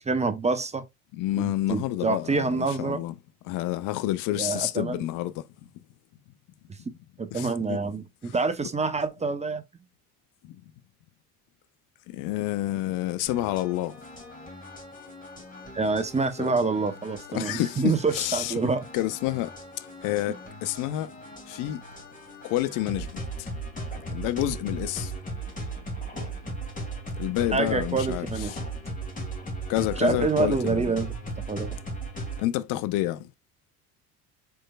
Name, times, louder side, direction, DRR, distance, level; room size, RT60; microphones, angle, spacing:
voice 1, 0.1-0.8 1.4-3.0 4.3-5.0 7.2-9.6 15.7-18.8 27.5-28.5 30.0-31.1 31.5-31.8, right 4 dB, 15° right, 0.7 m, -27 dB
voice 2, 1.1-3.1 3.5-5.4 7.3-7.8 10.4-10.6 12.1-14.0 16.4-16.5 17.3-18.6 18.9-19.5 20.0-21.1 21.5-21.8 22.4-23.5 24.1-25.1 27.2-28.6 29.7-31.0 32.4-33.3, left 15 dB, 45° left, 0.5 m, -29 dB
sound 1, 13.3-32.5, right 2 dB, 15° left, 2.3 m, -37 dB
4.5 x 4.5 x 2.2 m
hypercardioid pair, 65°, 45 cm